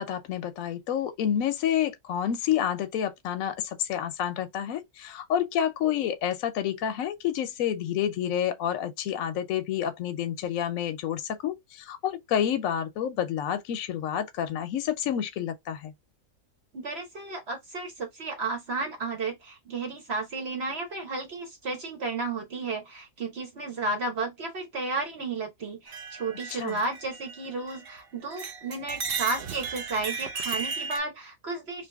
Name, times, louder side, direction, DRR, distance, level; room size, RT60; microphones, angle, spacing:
voice 1, 0.0-15.9 26.5-26.8, left 9 dB, 70° left, 0.9 m, -29 dB
voice 2, 16.7-31.9, right 3 dB, 45° right, 1.1 m, -33 dB
sound 1, 25.9-28.0 28.3-31.0, right 5 dB, 80° right, 0.5 m, -35 dB
2.8 x 2.6 x 3.3 m
omnidirectional pair, 1.6 m